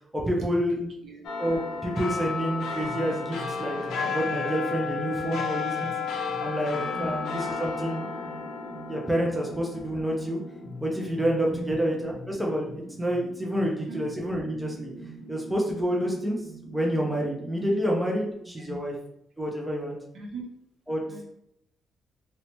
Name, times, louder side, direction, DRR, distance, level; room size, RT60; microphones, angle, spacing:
voice 1, 0.1-0.8 1.4-5.9 6.4-8.1 8.9-10.4 10.8-14.9 15.3-18.9 19.4-20.0 20.9-21.0, equal, 5° right, -1 dB, 0.4 m, -28 dB
voice 2, 0.7-1.3 6.9-7.2 11.5-11.8 13.8-14.1 18.5-18.8 20.1-20.5 21.1-21.2, right 1 dB, 60° right, 0 dB, 0.6 m, -39 dB
sound 1, 1.2-12.0 12.4-12.5, left 5 dB, 80° left, 0.4 m, -33 dB
sound 2, 2.8-18.3, equal, 20° left, 1.0 m, -45 dB
2.7 x 2.1 x 2.9 m, 0.77 s
cardioid pair, 170°, 0 cm